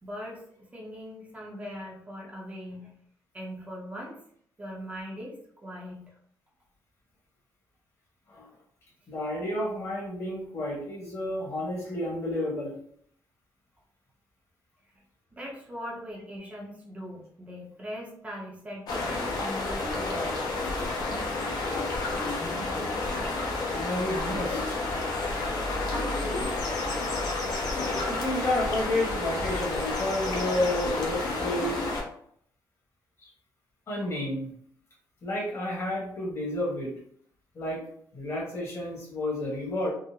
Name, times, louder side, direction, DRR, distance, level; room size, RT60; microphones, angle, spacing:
voice 1, 0.0-2.9 3.3-4.2 4.6-6.1 15.3-20.3 25.9-26.5, equal, 20° right, -3 dB, 0.6 m, -40 dB
voice 2, 9.1-12.8 23.7-24.8 28.1-31.8 33.2-33.3 33.9-34.5 35.2-36.9 37.5-37.8 38.1-39.9, left 1 dB, 40° left, -4 dB, 1.2 m, -31 dB
sound 1, 18.9-32.0, left 2 dB, 60° left, 0.8 m, -30 dB
3.7 x 2.0 x 2.7 m, 0.64 s
cardioid pair, 160°, 7 cm